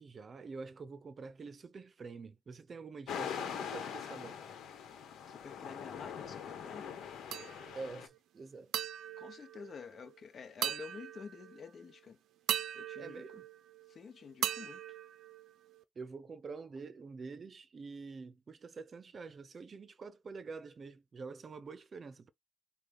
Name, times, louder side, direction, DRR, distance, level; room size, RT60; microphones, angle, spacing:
voice 1, 0.0-4.4 7.8-8.7 13.0-13.5 16.0-22.3, right 4 dB, 40° right, 0.6 m, -47 dB
sound 1, 3.1-8.1, left 8 dB, 75° left, 1.1 m, -42 dB
voice 2, 5.3-7.0 9.2-12.2 12.7-13.4 13.9-15.0, left 5 dB, 50° left, 0.9 m, -49 dB
sound 2, 7.3-7.9 8.7-10.2 10.6-11.6 12.5-14.0 14.4-15.8, right 11 dB, 80° right, 0.5 m, -39 dB
6.5 x 2.3 x 3.4 m
cardioid pair, 90°, 0 cm